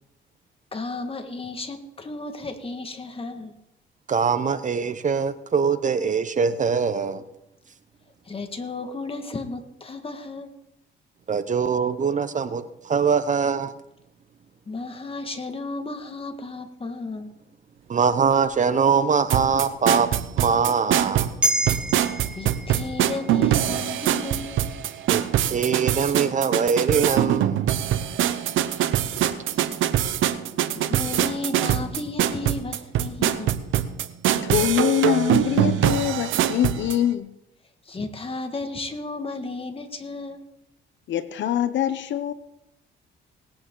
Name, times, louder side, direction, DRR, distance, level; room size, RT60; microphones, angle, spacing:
voice 1, 0.7-3.6 8.2-10.5 14.7-17.3 22.3-24.9 29.0-29.2 29.5-29.8 30.7-33.6 37.8-40.4, left 3 dB, 30° left, 1.8 m, -34 dB
voice 2, 4.1-7.2 11.3-13.7 17.9-20.1 20.4-21.3 25.1-27.6, right 6 dB, 40° right, 0.8 m, -23 dB
sound 1, 19.3-37.0, right 11 dB, 80° right, 0.8 m, -23 dB
sound 2, 21.4-25.9 26.3-26.4, right 1 dB, 5° right, 1.2 m, -31 dB
voice 3, 34.4-37.3 41.1-42.3, left 10 dB, 70° left, 0.8 m, -24 dB
19.0 x 8.8 x 3.9 m
cardioid pair, 90°, 20 cm